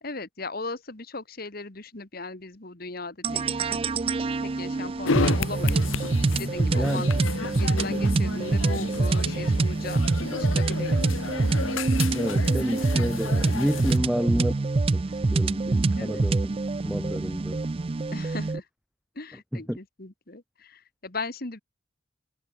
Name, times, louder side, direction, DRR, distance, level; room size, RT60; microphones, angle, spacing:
voice 1, 0.0-3.8 4.4-5.8 6.4-7.1 7.4-10.0 10.4-11.3 13.9-14.3 16.0-16.2 18.1-18.7 19.2-21.6, left 3 dB, 50° left, 1.8 m, -38 dB
sound 1, 3.2-18.6, right 3 dB, 30° right, 0.4 m, -25 dB
sound 2, 5.0-14.0, left 4 dB, 90° left, 0.9 m, -32 dB
voice 2, 12.1-14.5 14.9-16.6 16.8-17.6 19.5-19.8, equal, 5° right, 1.5 m, -29 dB
head